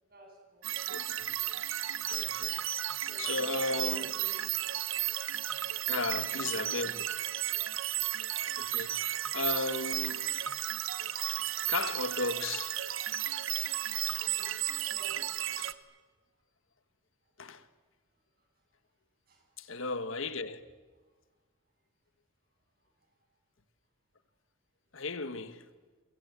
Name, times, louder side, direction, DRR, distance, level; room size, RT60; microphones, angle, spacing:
voice 1, 0.0-0.8 3.0-4.4 6.0-6.8 14.2-14.5 14.8-15.6 17.2-17.5 18.1-18.6 19.3-19.9 21.0-21.2 22.8-23.3, left 1 dB, 45° right, 7.8 m, -53 dB
sound 1, 0.6-15.7, right 12 dB, 75° right, 1.0 m, -34 dB
voice 2, 0.9-1.3 2.1-2.7 3.2-4.0 5.9-7.0 8.6-9.0 9.3-10.3 11.3-11.4 11.7-12.8 15.6-15.7 17.4-17.6 19.6-20.7 24.9-25.6, left 3 dB, 70° left, 1.3 m, -35 dB
29.0 x 24.0 x 8.0 m
head